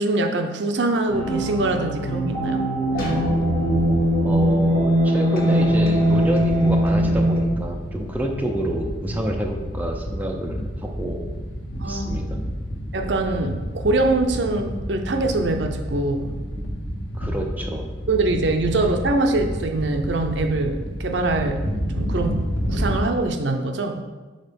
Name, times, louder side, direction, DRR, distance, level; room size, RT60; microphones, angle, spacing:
voice 1, 0.0-2.6 11.8-12.1 12.9-16.4 18.1-21.7 21.9-22.4 22.7-24.0, right 2 dB, 65° right, 5 dB, 0.6 m, -23 dB
sound 1, 1.1-7.4, equal, 50° left, 1.7 m, -20 dB
voice 2, 4.2-11.2 11.8-12.4 17.1-17.9, right 1 dB, 10° right, 1 dB, 0.6 m, -28 dB
sound 2, 5.6-23.0, equal, 80° left, 1.1 m, -30 dB
6.4 x 4.0 x 5.2 m, 1.3 s
head